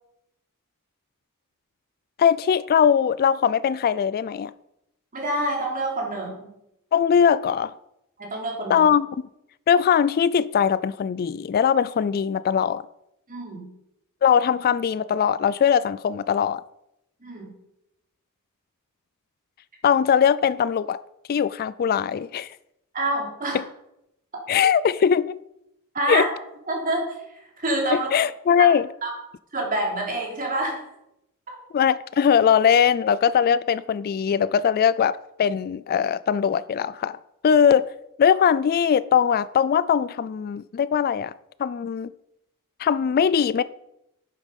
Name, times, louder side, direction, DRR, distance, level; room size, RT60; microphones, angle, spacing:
voice 1, 2.2-4.5 6.9-7.7 8.7-9.1 9.7-12.9 14.2-16.6 19.8-21.0 21.3-22.6 24.5-25.4 26.1-26.3 27.9-28.9 31.7-37.2 37.4-37.9 38.2-41.3 41.6-42.1 42.8-43.6, left 7 dB, 45° left, 0.3 m, -20 dB
voice 2, 5.1-6.5 8.2-8.8 13.3-13.7 17.2-17.5 22.9-23.6 24.3-24.4 25.9-26.3 26.7-28.1 29.0-29.1 29.5-30.8, right 1 dB, 40° right, 3.5 m, -27 dB
11.0 x 9.3 x 5.3 m
head